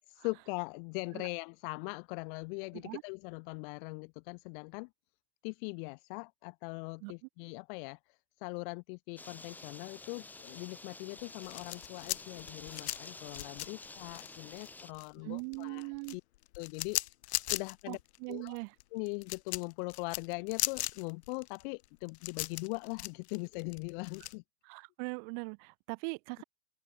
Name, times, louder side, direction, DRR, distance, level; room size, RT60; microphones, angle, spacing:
voice 1, 0.2-4.9 5.4-16.2 16.5-17.0 17.2-18.0 18.3-18.6 18.9-24.4, left 34 dB, 50° left, 1.3 m, -41 dB
sound 1, 9.2-14.9, left 3 dB, 5° left, 0.7 m, -50 dB
sound 2, 11.2-15.1 15.4-24.3, left 16 dB, 75° left, 2.1 m, -38 dB
voice 2, 15.2-16.2 17.9-18.7 24.6-26.4, right 38 dB, 50° right, 2.1 m, -40 dB
open air
supercardioid pair, 135°, 34 cm